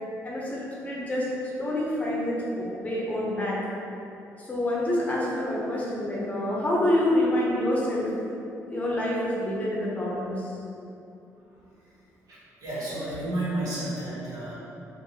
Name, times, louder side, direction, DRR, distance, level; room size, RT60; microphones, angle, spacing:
voice 1, 0.2-1.3 1.6-3.6 4.4-8.1 8.7-10.5, left 1 dB, 25° left, -5 dB, 0.7 m, -27 dB
voice 2, 12.3-14.6, right 1 dB, 75° right, -9 dB, 1.1 m, -31 dB
2.6 x 2.6 x 2.8 m, 2.7 s
cardioid pair, 100°, 6 cm